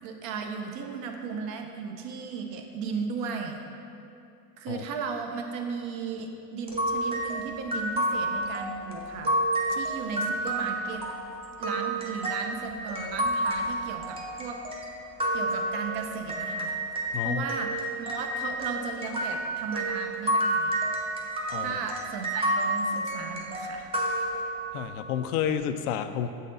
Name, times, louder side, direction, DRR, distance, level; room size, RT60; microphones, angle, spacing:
voice 1, 0.0-3.6 4.6-9.4 9.7-11.0 11.6-14.6 15.3-16.7 17.2-20.8 21.6-23.9 24.2-24.3, right 5 dB, 50° right, 4 dB, 0.8 m, -35 dB
sound 1, 6.7-17.2 17.5-24.9, right 1 dB, 15° right, 0.6 m, -30 dB
voice 2, 17.1-17.5 21.5-21.8 24.7-26.3, left 9 dB, 85° left, 9 dB, 0.5 m, -30 dB
7.4 x 4.1 x 4.0 m, 2.6 s
supercardioid pair, 125°, 44 cm